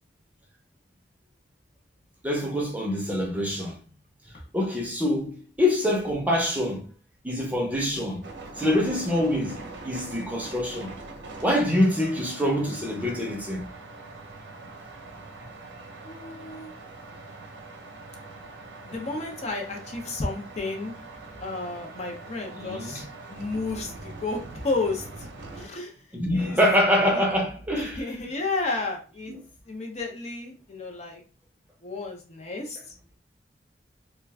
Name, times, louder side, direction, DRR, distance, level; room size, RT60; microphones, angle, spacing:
voice 1, 2.2-3.8 4.5-6.8 7.2-8.2 8.6-9.6 9.8-10.9 11.4-13.6 22.5-23.0 26.1-28.1 29.3-29.4, left 1 dB, 10° right, 0.6 m, -25 dB
sound 1, 8.2-25.7, right 3 dB, 85° right, 0.6 m, -43 dB
voice 2, 16.0-16.7 18.8-20.9 21.4-23.0 23.3-25.1 25.5-25.9 26.3-26.6 27.7-29.3 29.7-31.2 31.8-32.8, left 3 dB, 40° left, 0.5 m, -32 dB
2.3 x 2.2 x 3.3 m
head